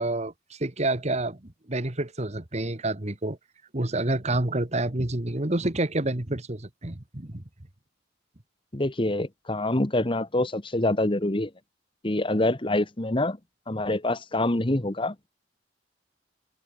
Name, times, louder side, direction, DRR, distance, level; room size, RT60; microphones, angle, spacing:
voice 1, 0.0-3.4 3.7-7.4, right 2 dB, 35° right, 1.6 m, -28 dB
voice 2, 8.7-11.5 12.0-13.4 13.7-15.3, left 1 dB, 25° left, 1.4 m, -26 dB
open air
head